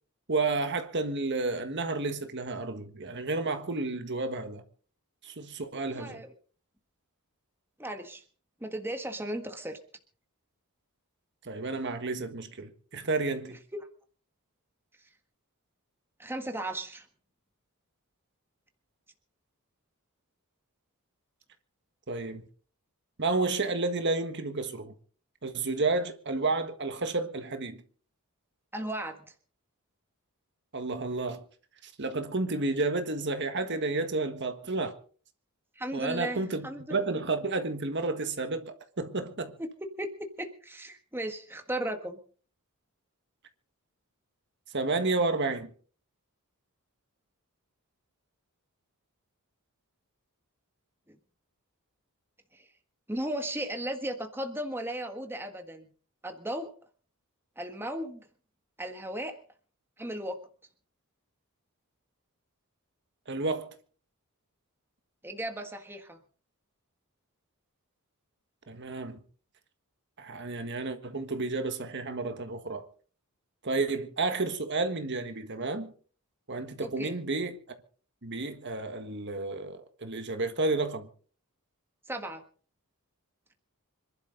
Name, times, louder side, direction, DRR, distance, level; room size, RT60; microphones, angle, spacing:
voice 1, 0.3-4.6 5.2-6.2 11.4-13.6 22.1-22.4 23.2-24.9 25.4-27.8 30.7-31.4 32.0-34.9 35.9-39.5 44.7-45.7 63.3-63.7 68.7-69.2 70.2-72.8 73.6-75.9 76.5-77.6 78.2-81.1, right 3 dB, 50° right, 1.6 m, -31 dB
voice 2, 5.8-6.3 7.8-8.2 8.6-9.8 13.7-13.9 16.2-17.1 28.7-29.2 35.7-36.8 40.0-42.2 51.1-51.2 52.5-52.6 53.1-55.9 56.2-56.7 57.6-58.2 58.8-59.4 60.0-60.4 65.2-66.2 76.8-77.2 82.1-82.4, right 1 dB, 10° right, 1.6 m, -36 dB
26.0 x 11.5 x 3.9 m
head